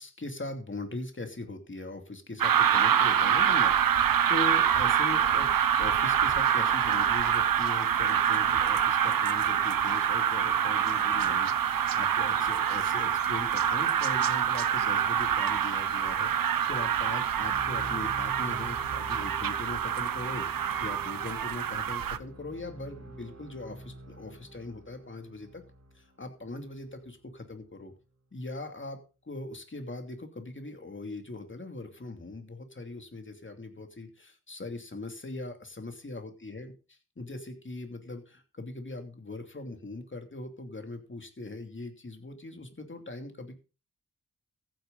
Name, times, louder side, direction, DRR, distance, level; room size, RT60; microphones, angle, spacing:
voice 1, 0.0-5.5 5.8-25.6 25.9-27.9 28.3-29.0 29.2-36.7 37.2-43.6, left 2 dB, 35° left, 5 dB, 2.8 m, -40 dB
sound 1, 2.4-22.2, right 8 dB, 75° right, 0.8 m, -26 dB
sound 2, 17.2-27.3, right 1 dB, 50° right, 3.6 m, -47 dB
15.0 x 9.2 x 4.0 m, 0.33 s
wide cardioid pair, 75°, 35 cm